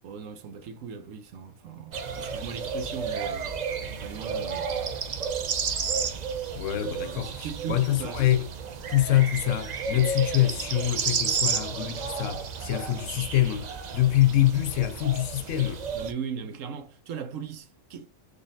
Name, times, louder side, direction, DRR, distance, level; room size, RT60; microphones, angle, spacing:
voice 1, 0.0-4.8 6.9-8.3 15.9-18.1, right 7 dB, 70° right, 1.0 m, -38 dB
sound 1, 1.9-16.1, right 6 dB, 85° right, 0.3 m, -32 dB
voice 2, 6.5-8.5 8.9-15.8, left 13 dB, 70° left, 0.9 m, -25 dB
3.9 x 3.3 x 2.6 m
omnidirectional pair, 1.4 m